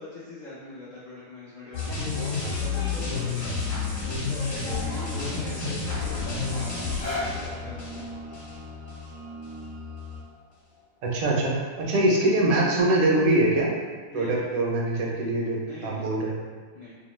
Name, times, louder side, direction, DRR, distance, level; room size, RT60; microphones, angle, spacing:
voice 1, 0.0-8.1 14.1-14.5 15.6-16.1 16.7-17.0, left 2 dB, 70° left, -9 dB, 0.4 m, -41 dB
sound 1, 1.7-8.6 8.9-9.0, left 4 dB, 55° left, 1.0 m, -30 dB
sound 2, 3.2-10.2, left 2 dB, 50° right, 0.6 m, -40 dB
sound 3, 6.7-12.8 13.5-13.6, left 2 dB, 25° left, 0.6 m, -40 dB
voice 2, 11.0-13.7 14.1-16.3, right 1 dB, 80° right, -2 dB, 1.1 m, -23 dB
2.7 x 2.1 x 3.1 m, 1.5 s
omnidirectional pair, 1.5 m